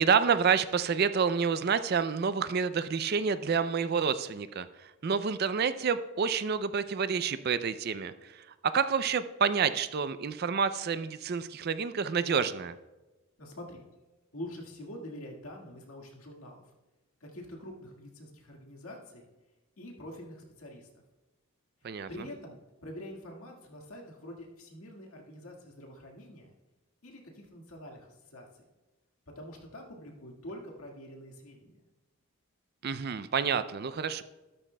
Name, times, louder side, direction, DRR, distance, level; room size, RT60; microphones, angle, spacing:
voice 1, 0.0-12.7 21.8-22.3 32.8-34.2, right 6 dB, 45° right, 13 dB, 0.4 m, -28 dB
voice 2, 13.4-13.8 14.3-16.6 17.2-19.3 19.8-20.9 22.1-26.5 27.0-28.5 29.4-31.8, left 1 dB, 70° left, 0 dB, 1.8 m, -45 dB
13.0 x 12.0 x 2.2 m, 1.1 s
head